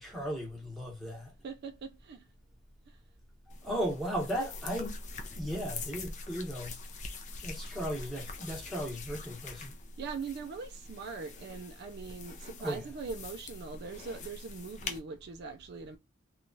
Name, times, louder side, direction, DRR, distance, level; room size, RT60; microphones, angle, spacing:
voice 1, 0.0-1.3 3.6-5.0 5.3-6.8 7.4-9.7 12.6-12.8, equal, ahead, 1.0 m, -36 dB
voice 2, 1.4-2.3 2.9-3.0 10.0-16.0, right 4 dB, 55° right, 0.4 m, -41 dB
sound 1, 3.5-15.0, left 3 dB, 35° left, 0.5 m, -44 dB
2.9 x 2.3 x 2.6 m
head